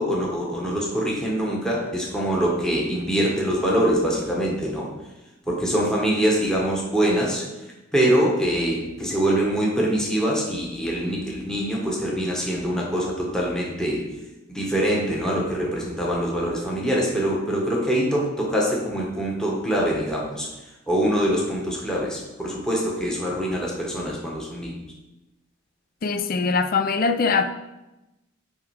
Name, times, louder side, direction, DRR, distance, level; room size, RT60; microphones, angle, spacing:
voice 1, 0.0-4.9 5.5-7.4 7.9-14.0 14.5-20.5 20.9-24.8, right 1 dB, 5° left, -3 dB, 1.2 m, -24 dB
voice 2, 26.0-27.4, left 4 dB, 45° left, 8 dB, 0.4 m, -22 dB
9.6 x 3.5 x 4.8 m, 1.0 s
head